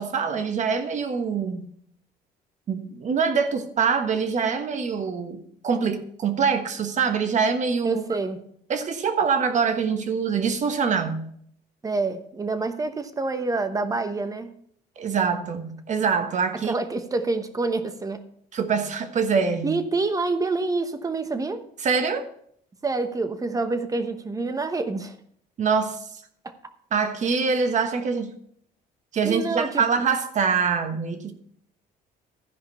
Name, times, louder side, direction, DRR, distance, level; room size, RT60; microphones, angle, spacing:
voice 1, 0.0-1.7 2.7-8.0 8.7-11.3 15.0-16.7 18.5-19.8 21.8-22.3 25.6-26.0 26.9-28.3 29.1-31.3, right 5 dB, 45° right, 8 dB, 1.3 m, -24 dB
voice 2, 7.8-8.4 11.8-14.5 16.6-18.3 19.6-21.6 22.8-25.2 26.4-26.5 29.2-30.0, right 3 dB, 20° right, 9 dB, 1.0 m, -27 dB
14.0 x 5.1 x 5.5 m, 0.66 s
cardioid pair, 110°, 17 cm